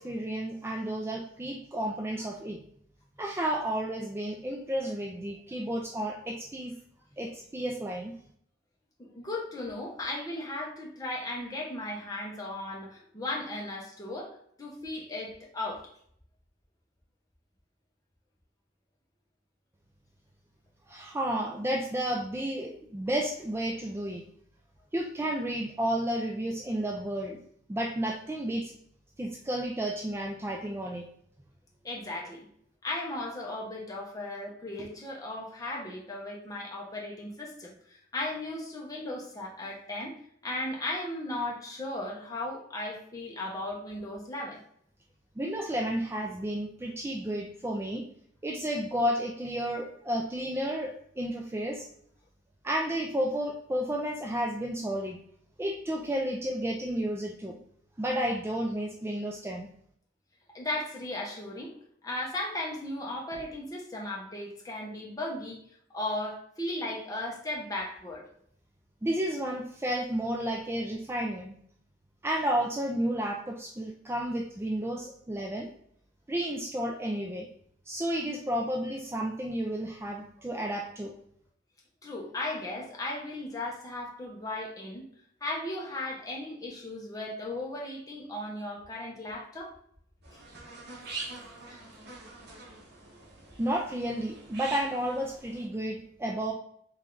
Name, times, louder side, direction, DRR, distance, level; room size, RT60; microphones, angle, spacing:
voice 1, 0.0-2.6 3.2-6.7 7.2-8.1 20.9-24.2 24.9-27.4 27.7-28.7 29.2-31.1 45.4-48.1 48.4-51.9 52.6-55.2 55.6-57.6 58.0-59.7 69.0-71.5 72.2-75.7 76.3-77.5 77.9-81.1 93.6-96.5, right 1 dB, 15° right, 0 dB, 0.4 m, -32 dB
voice 2, 9.0-15.8 31.8-32.5 32.8-40.1 40.4-44.6 60.5-61.7 62.0-65.6 65.9-68.2 82.0-85.0 85.4-89.7 91.7-91.8, left 2 dB, 20° left, -2 dB, 0.9 m, -36 dB
sound 1, 90.2-95.7, right 3 dB, 65° right, 1.3 m, -44 dB
3.6 x 3.2 x 3.8 m, 0.66 s
head